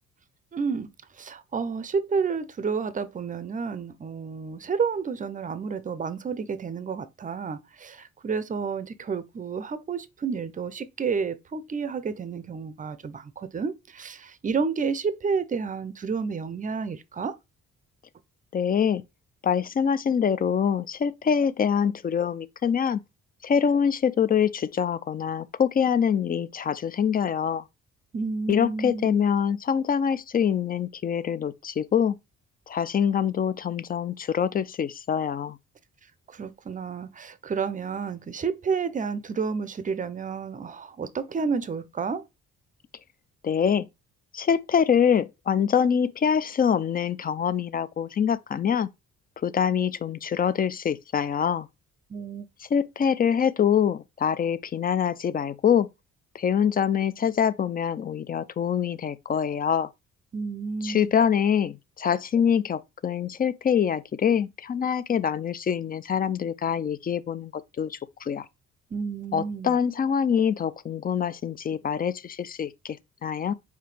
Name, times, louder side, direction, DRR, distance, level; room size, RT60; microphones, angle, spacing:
voice 1, 0.5-0.9 1.2-17.3 28.1-29.3 36.3-42.2 52.1-52.5 60.3-61.1 68.9-69.8, right 5 dB, 25° right, 0.5 m, -30 dB
voice 2, 18.5-19.0 19.4-23.0 23.4-27.6 28.5-32.2 32.7-35.6 43.4-43.9 44.3-48.9 49.4-51.7 52.6-55.9 56.3-59.9 60.8-68.5 69.3-73.5, left 7 dB, 30° left, 0.4 m, -25 dB
4.9 x 3.2 x 3.2 m
cardioid pair, 90°, 30 cm